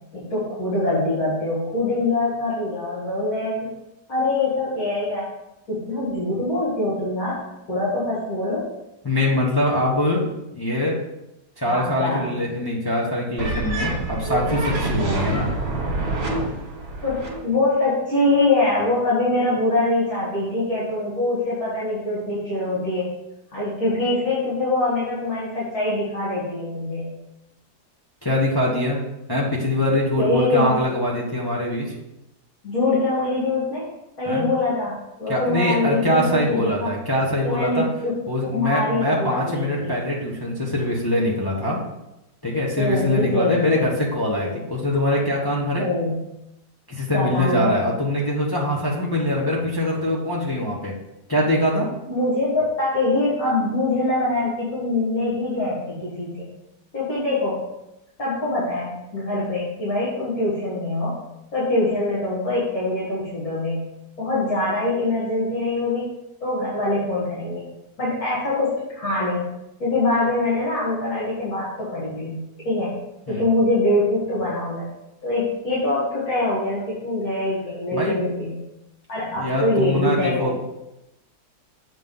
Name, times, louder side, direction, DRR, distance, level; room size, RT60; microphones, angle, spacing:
voice 1, 0.1-3.6 4.1-5.3 5.7-7.3 7.7-8.6 11.7-12.3 15.0-15.3 17.0-23.1 23.5-27.1 30.2-30.8 32.6-33.9 34.2-36.9 37.4-38.1 38.4-40.0 42.8-43.8 44.4-44.6 45.8-46.1 47.1-47.7 52.1-56.5 56.9-57.6 58.2-61.1 61.5-63.8 64.2-66.1 66.4-67.6 68.0-69.5 69.8-72.4 72.6-73.0 73.3-74.9 75.2-78.6 79.1-80.5, left 2 dB, 60° left, -9 dB, 2.6 m, -23 dB
voice 2, 9.0-10.3 10.5-11.0 11.6-15.5 28.2-29.0 29.3-32.0 34.3-34.5 35.3-37.8 38.3-41.8 42.4-45.8 46.9-50.9 51.3-51.9 73.3-73.5 77.9-78.2 79.3-80.5, left 1 dB, 15° left, -4 dB, 0.9 m, -23 dB
sound 1, 13.4-17.4, right 2 dB, 55° right, 1.8 m, -26 dB
7.6 x 3.7 x 5.4 m, 0.91 s
omnidirectional pair, 1.8 m